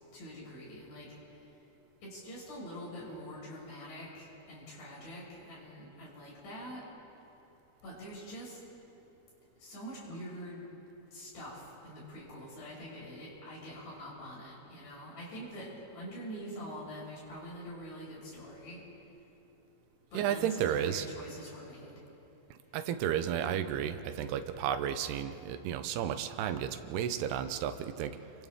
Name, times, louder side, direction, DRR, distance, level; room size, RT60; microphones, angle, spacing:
voice 1, 0.1-1.1 2.0-6.8 7.8-8.6 9.6-10.6 11.1-18.8 20.1-22.0, equal, 80° left, -6 dB, 8.5 m, -45 dB
voice 2, 20.1-21.1 22.7-28.2, right 9 dB, 85° right, 9 dB, 2.9 m, -32 dB
30.0 x 24.0 x 3.6 m, 3.0 s
omnidirectional pair, 4.7 m